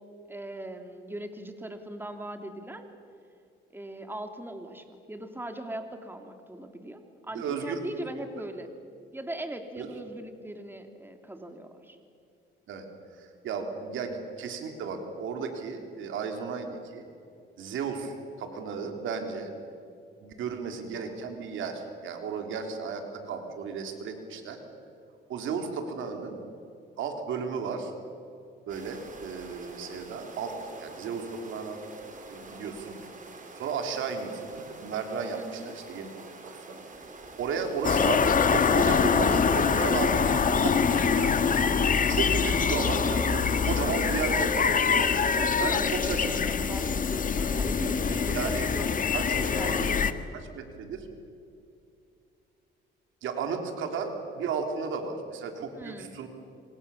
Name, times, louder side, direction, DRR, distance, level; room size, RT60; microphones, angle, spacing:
voice 1, 0.3-2.8 3.7-8.7 9.1-12.0 35.3-35.8 45.2-49.0 49.3-49.9 55.8-56.1, right 1 dB, 10° right, 6 dB, 2.9 m, -39 dB
voice 2, 7.3-8.1 9.8-9.9 12.7-12.9 13.2-17.0 17.6-19.5 20.2-24.6 25.3-26.4 27.0-27.9 28.7-30.5 30.8-31.8 32.3-33.0 33.6-36.1 36.4-36.5 37.4-41.4 42.1-44.7 45.5-46.4 48.3-48.7 49.1-49.9 50.3-51.1 53.2-56.3, right 5 dB, 80° right, 5 dB, 3.7 m, -34 dB
sound 1, 28.7-46.2, right 3 dB, 40° right, 4.9 m, -46 dB
sound 2, 37.8-50.1, left 6 dB, 40° left, 1.5 m, -24 dB
26.5 x 25.5 x 7.3 m, 2.5 s
cardioid pair, 90°, 20 cm